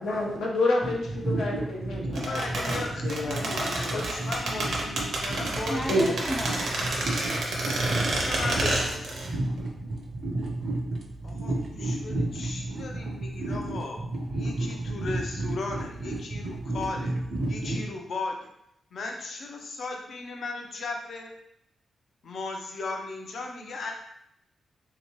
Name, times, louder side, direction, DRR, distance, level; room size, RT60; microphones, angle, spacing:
voice 1, 0.0-3.4 3.9-4.0 5.9-6.0, left 1 dB, 90° left, 0.8 m, -28 dB
sound 1, 0.8-17.9, right 2 dB, 45° right, 0.5 m, -32 dB
sound 2, 2.2-9.3 9.6-9.7, right 2 dB, 70° right, 0.8 m, -29 dB
voice 2, 2.3-6.3 8.1-9.1 11.2-14.0 14.3-17.1 17.5-18.4 18.9-21.3 22.2-23.9, left 3 dB, 55° left, 0.6 m, -36 dB
voice 3, 5.5-7.8, equal, 5° left, 0.4 m, -36 dB
3.5 x 2.9 x 3.0 m
wide cardioid pair, 160°, 0 cm